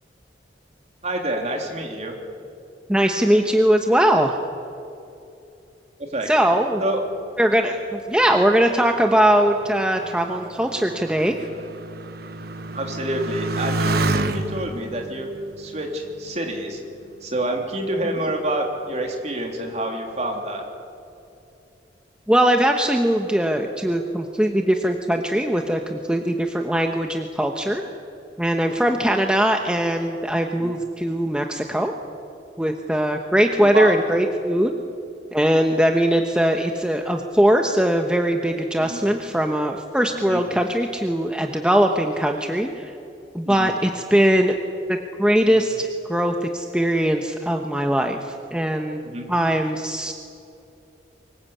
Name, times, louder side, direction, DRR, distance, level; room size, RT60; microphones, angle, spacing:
voice 1, 1.0-2.2 6.0-6.3 6.8-7.0 12.7-15.3 15.6-16.8 17.2-20.6 28.8-28.9 30.5-30.7 33.6-33.9 38.8-39.0 40.1-40.4 43.4-43.7 45.5-45.7 49.0-49.3, right 1 dB, 40° right, 2 dB, 3.3 m, -27 dB
voice 2, 2.9-4.4 6.3-6.8 7.4-11.4 22.3-27.8 28.4-31.9 32.6-34.7 35.3-42.9 43.3-44.6 44.9-48.2 48.5-49.0 49.3-50.1, right 1 dB, 5° right, 3 dB, 1.0 m, -20 dB
Motorcycle, 8.1-17.1 17.8-18.4, right 2 dB, 55° right, 1.1 m, -30 dB
24.5 x 20.5 x 8.5 m, 2.7 s
head